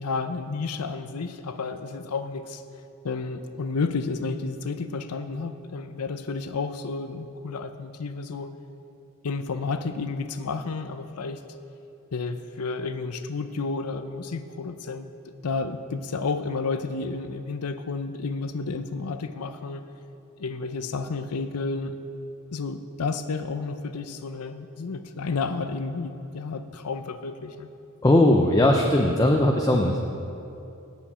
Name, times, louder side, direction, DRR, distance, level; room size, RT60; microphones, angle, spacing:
voice 1, 0.0-2.6 3.0-8.5 9.2-11.4 12.1-19.9 20.4-21.9 22.5-27.7, left 4 dB, 85° left, 10 dB, 0.6 m, -31 dB
voice 2, 28.0-30.0, left 1 dB, 15° left, 1 dB, 0.5 m, -19 dB
7.6 x 7.2 x 8.3 m, 2.7 s
head